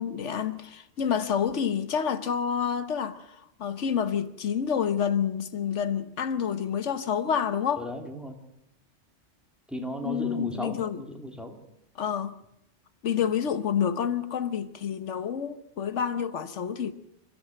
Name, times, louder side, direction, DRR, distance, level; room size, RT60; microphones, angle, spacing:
voice 1, 0.0-3.3 3.6-7.9 10.0-11.0 12.0-12.4 13.0-16.9, left 7 dB, 85° left, 1.3 m, -28 dB
voice 2, 7.8-8.4 9.7-11.6, equal, ahead, 2.9 m, -36 dB
27.0 x 14.0 x 7.8 m
omnidirectional pair, 1.2 m